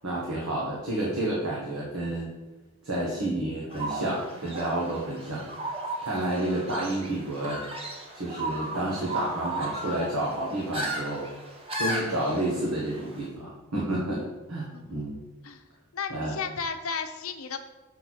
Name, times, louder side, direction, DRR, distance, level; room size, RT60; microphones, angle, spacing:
voice 1, 0.0-2.3 2.8-5.5 6.0-7.6 8.1-11.3 11.8-15.2 16.1-16.3, right 1 dB, 80° right, -5 dB, 1.6 m, -30 dB
sound 1, 3.7-13.2, right 1 dB, 25° right, 1.1 m, -35 dB
voice 2, 15.9-17.6, left 5 dB, 70° left, 7 dB, 0.7 m, -34 dB
6.5 x 4.3 x 6.4 m, 1.1 s
head